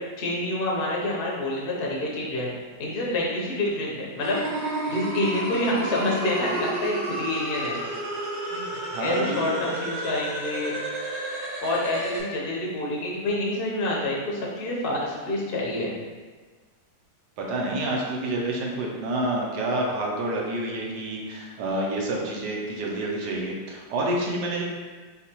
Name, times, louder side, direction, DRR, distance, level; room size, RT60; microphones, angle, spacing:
voice 1, 0.2-2.5 2.8-4.4 4.9-7.8 9.0-10.7 11.6-15.9, left 1 dB, 45° left, -4 dB, 0.8 m, -27 dB
sound 1, 4.2-12.2, right 2 dB, 50° right, 1.5 m, -31 dB
voice 2, 8.5-9.6 17.4-24.6, right 1 dB, 75° right, -2 dB, 1.3 m, -28 dB
4.1 x 3.6 x 2.9 m, 1.4 s
omnidirectional pair, 1.8 m